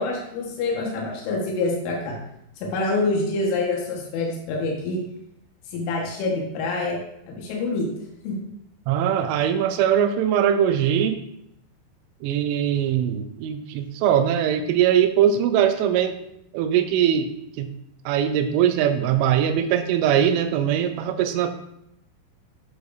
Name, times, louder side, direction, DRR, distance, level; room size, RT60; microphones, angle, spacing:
voice 1, 0.0-2.2 2.6-5.0 5.7-7.0 7.3-7.9 8.2-8.4, left 3 dB, 85° left, -2 dB, 4.0 m, -26 dB
voice 2, 8.9-11.2 12.2-16.2 16.5-17.3 17.6-17.7 18.1-21.5, right 9 dB, 85° right, 8 dB, 3.0 m, -21 dB
12.0 x 6.0 x 2.7 m, 0.78 s
omnidirectional pair, 5.5 m